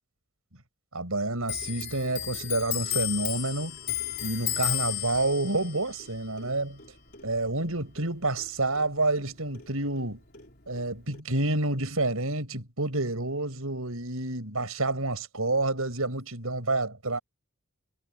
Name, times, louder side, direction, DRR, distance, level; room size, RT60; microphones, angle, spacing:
voice 1, 0.9-3.8 4.2-6.8 7.2-10.2 10.7-17.2, right 2 dB, 75° right, 6.0 m, -29 dB
Clock, 1.4-8.5 8.8-10.1 10.3-11.2, left 12 dB, 45° left, 4.3 m, -34 dB
head